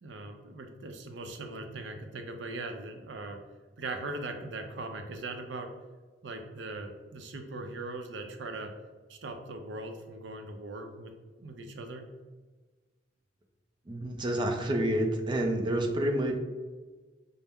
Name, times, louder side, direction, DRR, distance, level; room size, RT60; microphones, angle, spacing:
voice 1, 0.0-3.4 3.8-5.7 6.2-8.7 9.1-11.1 11.4-12.1, right 2 dB, 85° right, 5 dB, 0.6 m, -40 dB
voice 2, 13.9-16.4, right 1 dB, 25° right, 4 dB, 0.5 m, -28 dB
5.5 x 2.0 x 3.5 m, 1.3 s
head